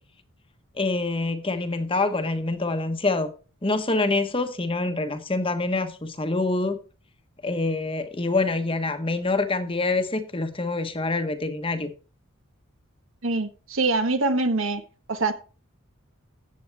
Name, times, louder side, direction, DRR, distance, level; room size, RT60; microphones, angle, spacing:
voice 1, 0.8-3.3 3.6-6.8 7.4-11.9, left 3 dB, 25° left, 1.2 m, -26 dB
voice 2, 13.2-14.8 15.1-15.3, right 3 dB, 65° right, 1.5 m, -24 dB
14.0 x 8.0 x 3.5 m
head